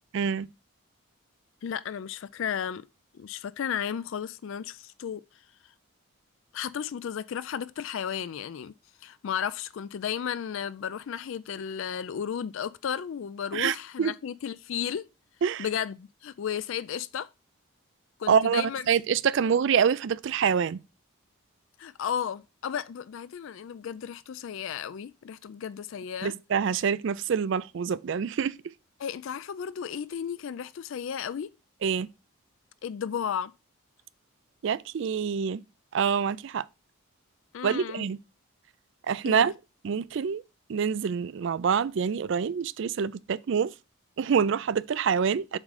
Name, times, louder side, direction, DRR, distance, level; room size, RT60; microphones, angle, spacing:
voice 1, 0.1-0.5 13.5-14.1 15.4-15.6 18.3-20.8 26.2-28.5 31.8-32.1 34.6-35.6 35.9-36.6 37.6-38.2 39.1-39.5 39.8-40.4 40.7-43.7 44.2-45.6, right 7 dB, 55° right, 0.3 m, -26 dB
voice 2, 1.6-2.8 3.1-5.2 6.5-8.7 9.0-15.0 15.6-17.3 18.2-18.8 19.5-19.6 21.8-26.3 29.0-31.5 32.8-33.5 37.5-38.1 39.2-39.5, left 8 dB, 60° left, 0.3 m, -34 dB
7.4 x 3.7 x 4.8 m
head